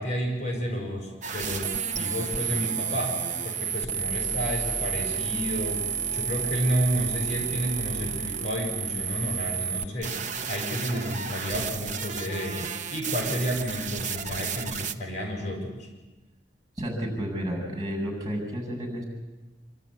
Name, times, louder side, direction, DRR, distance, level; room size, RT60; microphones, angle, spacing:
voice 1, 0.0-5.9 6.1-15.9, equal, 45° left, 0 dB, 6.8 m, -31 dB
sound 1, 1.2-14.9, right 7 dB, 45° right, 1.0 m, -31 dB
voice 2, 16.8-19.0, equal, 25° right, 1 dB, 7.4 m, -31 dB
27.5 x 13.0 x 9.8 m, 1.2 s
head